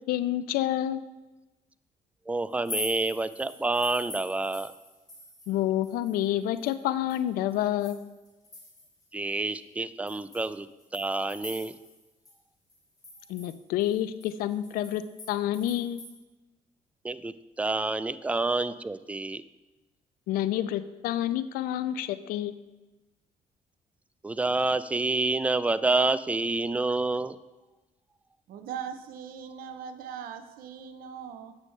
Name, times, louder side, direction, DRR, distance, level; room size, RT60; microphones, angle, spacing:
voice 1, 0.1-1.0 5.5-8.0 13.3-15.0 15.3-16.0 20.3-22.5, left 12 dB, 85° left, 14 dB, 0.4 m, -28 dB
voice 2, 2.3-4.7 9.1-10.7 10.9-11.8 17.0-19.4 24.2-27.4, right 2 dB, 10° right, 14 dB, 0.3 m, -28 dB
sound 1, 2.5-5.6 5.8-9.0 9.5-9.6 10.1-12.0 12.3-12.4 12.7-16.1, left 2 dB, 25° left, 2.3 m, -43 dB
voice 3, 28.5-31.5, right 8 dB, 80° right, 8 dB, 0.6 m, -40 dB
8.2 x 6.2 x 3.2 m, 1.1 s
cardioid pair, 80°, 15 cm